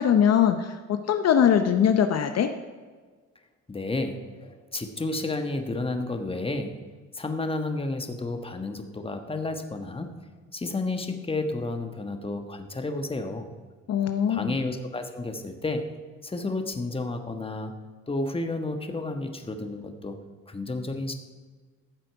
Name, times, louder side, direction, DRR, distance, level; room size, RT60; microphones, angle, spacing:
voice 1, 0.0-2.5 13.9-14.6, left 8 dB, 55° left, 7 dB, 0.7 m, -22 dB
voice 2, 3.7-6.8 7.1-10.1 10.5-13.5 14.3-17.8 18.1-20.2 20.5-21.1, left 2 dB, 20° left, 6 dB, 1.3 m, -31 dB
14.0 x 7.6 x 4.7 m, 1.5 s
cardioid pair, 90°, 30 cm